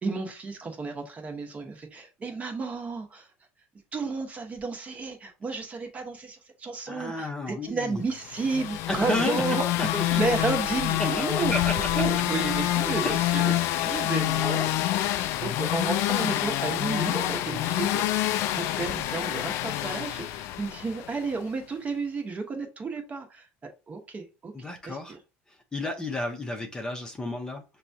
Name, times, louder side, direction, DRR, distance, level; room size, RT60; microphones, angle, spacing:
voice 1, 0.0-3.3 3.9-9.6 10.2-18.2 18.5-24.5 24.9-25.2, right 4 dB, 30° right, 1.0 m, -32 dB
voice 2, 6.9-8.0 8.9-9.4 9.8-10.2 11.5-11.7 13.0-13.2 13.9-14.1 16.9-17.0 24.5-25.2 25.5-27.6, left 2 dB, 15° left, 0.7 m, -32 dB
sound 1, 8.3-21.2, left 14 dB, 65° left, 0.3 m, -27 dB
5.9 x 2.3 x 2.7 m
supercardioid pair, 115°, 5 cm